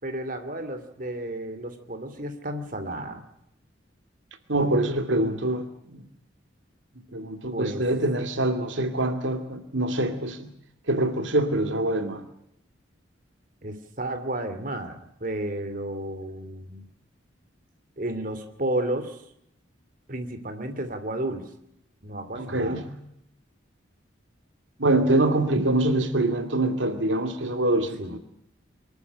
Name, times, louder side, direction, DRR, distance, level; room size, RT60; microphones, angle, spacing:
voice 1, 0.0-3.2 7.5-7.8 13.6-16.8 18.0-19.2 20.1-21.4 22.0-22.9 28.0-28.2, right 1 dB, 45° right, 7 dB, 2.6 m, -32 dB
voice 2, 4.5-5.6 5.9-6.0 7.1-10.5 10.9-12.2 22.4-22.9 24.8-28.2, right 1 dB, 80° right, 8 dB, 2.5 m, -24 dB
24.0 x 13.5 x 9.8 m, 0.77 s
head